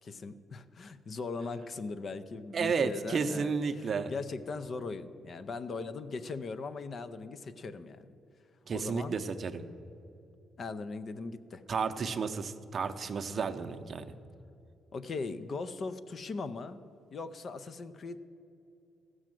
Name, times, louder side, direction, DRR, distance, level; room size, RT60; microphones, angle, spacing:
voice 1, 0.0-8.1 8.7-9.2 10.6-11.6 14.9-16.8 17.1-18.2, left 4 dB, 50° left, 11 dB, 0.6 m, -39 dB
voice 2, 2.5-4.1 8.7-9.6 11.7-14.1, right 5 dB, 45° right, 8 dB, 0.6 m, -32 dB
15.0 x 6.3 x 7.6 m, 2.7 s
cardioid pair, 90°, 0 cm